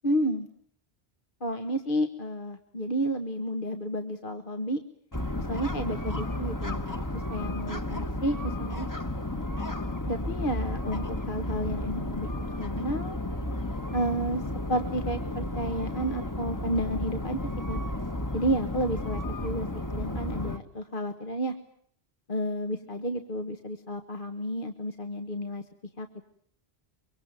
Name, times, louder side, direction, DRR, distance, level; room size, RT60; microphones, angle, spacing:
voice 1, 0.0-0.5 1.4-4.8 5.5-8.9 10.1-12.3 12.6-13.2 13.9-14.4 14.7-17.4 17.7-17.8 18.3-21.6 22.3-25.6 26.0-26.3, right 1 dB, 50° left, 7 dB, 1.6 m, -31 dB
sound 1, 5.1-20.6, left 1 dB, 20° left, 1.3 m, -33 dB
24.0 x 24.0 x 8.9 m, 0.62 s
omnidirectional pair, 1.1 m